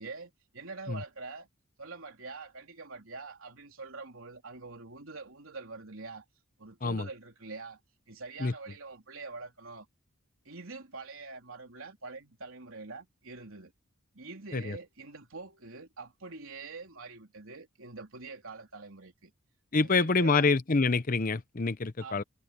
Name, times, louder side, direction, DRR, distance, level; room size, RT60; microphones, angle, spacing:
voice 1, 0.0-1.5 1.8-6.3 6.6-7.8 8.1-9.9 10.5-13.7 14.1-19.3 19.8-20.6 22.0-22.2, right 3 dB, 75° right, 3.6 m, -45 dB
voice 2, 19.7-22.2, left 4 dB, 40° left, 0.8 m, -26 dB
head